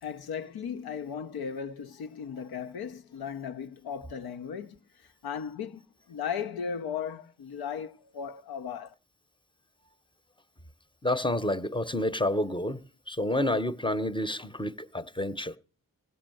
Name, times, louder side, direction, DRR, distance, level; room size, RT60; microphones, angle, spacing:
voice 1, 0.0-8.9, left 7 dB, 90° left, 0.7 m, -37 dB
voice 2, 11.0-15.6, left 1 dB, 15° left, 0.8 m, -29 dB
16.5 x 5.6 x 7.6 m
cardioid pair, 45°, 36 cm